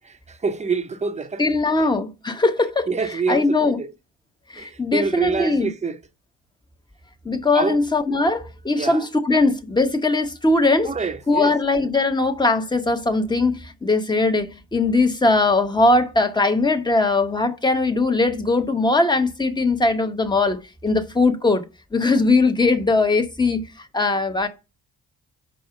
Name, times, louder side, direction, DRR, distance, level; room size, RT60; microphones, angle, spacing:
voice 1, 0.3-1.4 2.9-3.9 4.6-6.0 7.5-7.8 8.8-9.0 10.8-11.5, right 4 dB, 25° right, 0.8 m, -26 dB
voice 2, 1.4-2.9 3.3-3.8 4.5-5.7 7.2-10.9 11.3-21.6 21.9-23.6 23.9-24.5, left 3 dB, 15° left, 1.1 m, -20 dB
5.3 x 4.9 x 5.8 m
cardioid pair, 90°, 30 cm